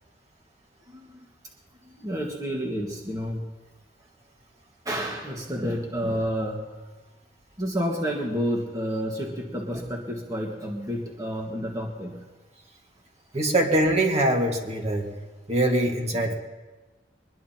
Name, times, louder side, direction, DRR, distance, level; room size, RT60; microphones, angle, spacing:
voice 1, 0.9-1.2 1.8-3.4 4.8-6.7 7.6-12.2 16.1-16.2, equal, 20° right, -1 dB, 1.6 m, -30 dB
voice 2, 13.3-15.1 15.5-16.3, right 1 dB, 40° right, 1 dB, 1.8 m, -23 dB
23.0 x 20.5 x 2.9 m, 1.2 s
head